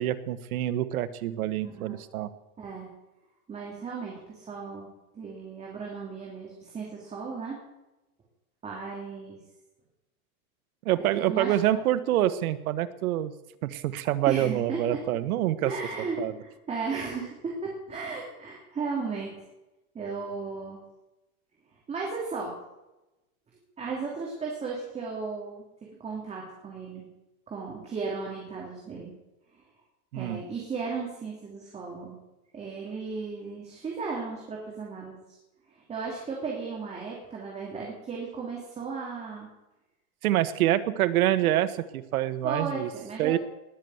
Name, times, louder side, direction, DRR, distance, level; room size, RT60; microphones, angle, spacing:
voice 1, 0.0-2.3 10.8-13.3 13.6-15.7 16.2-16.3 30.1-30.4 40.2-42.9 43.2-43.4, right 13 dB, 75° right, 12 dB, 1.4 m, -26 dB
voice 2, 1.6-2.0 2.6-2.9 3.5-4.9 5.1-7.6 8.6-9.4 11.3-11.8 14.2-15.0 15.6-19.4 19.9-20.8 21.9-22.5 23.8-27.1 27.5-29.1 29.5-29.6 30.1-32.2 32.5-35.4 35.7-39.5 42.4-43.4, right 4 dB, 15° right, -3 dB, 2.8 m, -35 dB
19.5 x 7.1 x 7.8 m, 0.98 s
supercardioid pair, 165°, 43 cm